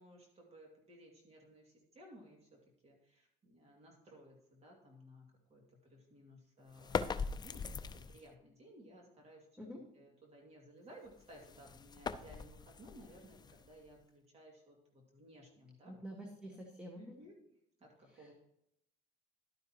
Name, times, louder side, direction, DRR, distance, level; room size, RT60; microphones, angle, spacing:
voice 1, 0.0-2.5 2.8-9.5 9.9-15.9 17.0-17.4 17.8-18.3, equal, 40° right, 0 dB, 2.3 m, -58 dB
sound 1, 6.7-8.3 11.1-14.0, left 5 dB, 25° left, 0.4 m, -41 dB
voice 2, 15.8-17.1 18.1-18.3, equal, 5° right, 0 dB, 1.5 m, -48 dB
11.5 x 9.3 x 2.9 m, 0.77 s
cardioid pair, 110°, 17 cm